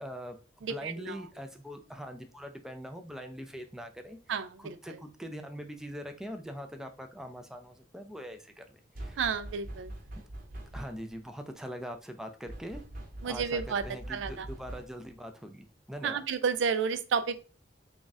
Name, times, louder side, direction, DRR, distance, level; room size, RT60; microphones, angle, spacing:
voice 1, 0.0-4.2 4.6-9.2 10.7-12.8 13.2-16.2, equal, 5° right, 5 dB, 0.4 m, -42 dB
voice 2, 0.6-1.2 4.3-4.8 9.2-9.9 13.2-13.8 14.1-14.5 16.0-17.4, right 6 dB, 80° right, 12 dB, 0.4 m, -31 dB
sound 1, 8.9-11.2 12.5-15.1, right 1 dB, 50° right, 0.9 m, -43 dB
3.5 x 2.4 x 4.0 m, 0.35 s
head